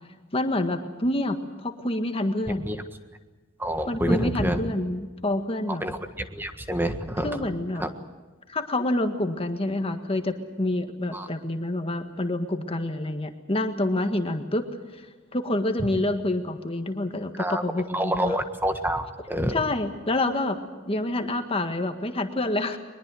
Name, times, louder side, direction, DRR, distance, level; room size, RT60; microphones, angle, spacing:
voice 1, 0.3-2.7 3.9-5.8 7.2-7.8 8.5-14.6 15.0-15.1 15.3-18.4 19.5-22.8, left 1 dB, 30° left, 6 dB, 1.7 m, -27 dB
voice 2, 3.6-4.6 5.8-6.0 6.3-7.3 7.8-7.9 11.1-11.2 17.4-17.6 17.9-19.5, equal, 10° right, 7 dB, 1.6 m, -27 dB
22.5 x 21.5 x 7.8 m, 1.3 s
head